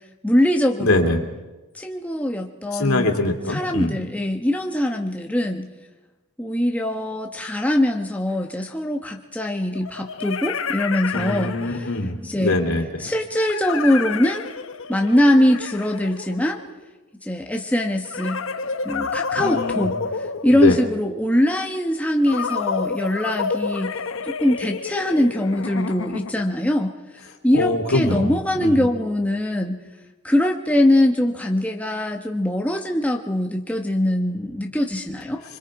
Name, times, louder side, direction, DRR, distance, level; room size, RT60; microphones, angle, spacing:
voice 1, 0.2-1.0 1.7-3.1 3.5-5.7 6.4-11.5 12.2-12.6 13.0-14.4 14.9-16.6 17.2-18.4 18.8-19.9 20.4-23.9 24.2-26.9 27.4-29.8 30.2-35.4, left 1 dB, 5° left, 2 dB, 1.1 m, -22 dB
voice 2, 0.8-1.2 2.7-4.0 11.1-13.1 19.4-19.9 20.5-20.8 27.5-28.9, left 2 dB, 85° left, 4 dB, 2.8 m, -23 dB
sound 1, 8.3-8.4 9.7-12.1 13.4-16.8 18.0-21.1 22.3-26.5, left 5 dB, 65° left, 0.9 m, -29 dB
25.5 x 24.5 x 4.8 m, 1.1 s
head